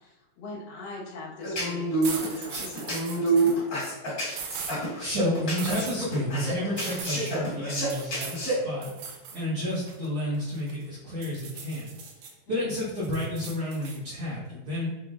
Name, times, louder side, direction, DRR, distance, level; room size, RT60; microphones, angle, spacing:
voice 1, 0.0-3.9 12.5-12.7, left 3 dB, 85° left, -7 dB, 1.0 m, -42 dB
sound 1, 1.4-8.5, right 2 dB, 55° left, 1.0 m, -28 dB
sound 2, 2.0-3.6 4.3-4.8 5.6-6.0 6.8-7.3 7.9-8.4 8.8-9.4 9.7-10.8 11.2-12.3 12.7-14.0, right 5 dB, 85° right, 2.3 m, -39 dB
voice 2, 5.0-8.9 9.3-11.9 12.5-14.9, left 1 dB, 65° right, -9 dB, 1.3 m, -31 dB
5.8 x 3.0 x 2.5 m, 1.1 s
omnidirectional pair, 4.1 m